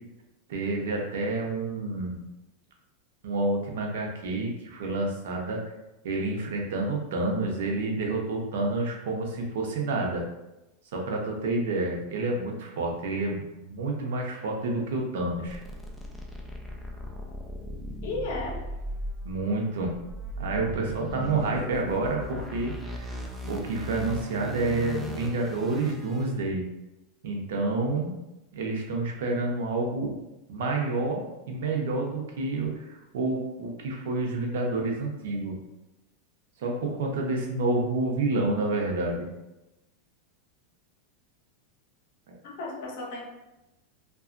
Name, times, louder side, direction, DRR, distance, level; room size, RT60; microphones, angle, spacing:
voice 1, 0.5-2.2 3.2-5.6 6.0-10.2 10.9-15.6 19.2-19.9 20.4-23.2 23.5-26.6 27.2-28.1 28.5-30.2 30.5-35.6 36.6-39.3 42.3-42.4, right 2 dB, 75° right, 0 dB, 0.6 m, -29 dB
sound 1, 15.5-26.3, equal, 5° right, 0.3 m, -37 dB
voice 2, 18.0-18.6 42.4-43.2, left 3 dB, 60° left, -1 dB, 0.7 m, -34 dB
2.8 x 2.3 x 2.5 m, 0.97 s
supercardioid pair, 155°, 0 cm